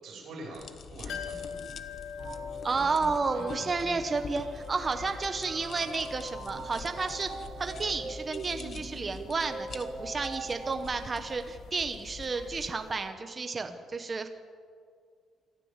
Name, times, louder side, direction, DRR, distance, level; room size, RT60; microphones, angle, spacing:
voice 1, 0.0-1.6 1.9-2.1 2.7-4.1 13.6-13.7, right 1 dB, 60° right, -2 dB, 7.5 m, -45 dB
sound 1, 0.5-12.7, left 5 dB, 45° left, 1.0 m, -45 dB
sound 2, 1.1-12.7 13.0-13.1, left 7 dB, 85° left, 1.9 m, -46 dB
sound 3, 2.2-10.9, right 3 dB, 45° right, 1.9 m, -43 dB
voice 2, 2.6-7.3 7.6-14.3, right 4 dB, 25° right, 7 dB, 1.1 m, -31 dB
25.5 x 13.5 x 7.4 m, 2.1 s
cardioid pair, 160°, 0 cm